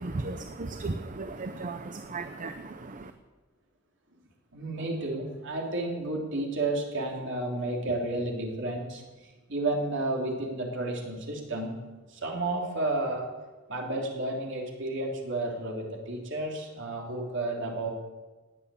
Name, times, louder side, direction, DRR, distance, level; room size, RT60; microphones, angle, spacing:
voice 1, 0.0-3.1, right 3 dB, 40° right, 8 dB, 0.7 m, -36 dB
voice 2, 4.5-9.0 9.5-11.8 12.1-13.3 13.7-17.9, right 2 dB, 60° right, 1 dB, 3.1 m, -31 dB
18.5 x 7.9 x 8.4 m, 1.3 s
head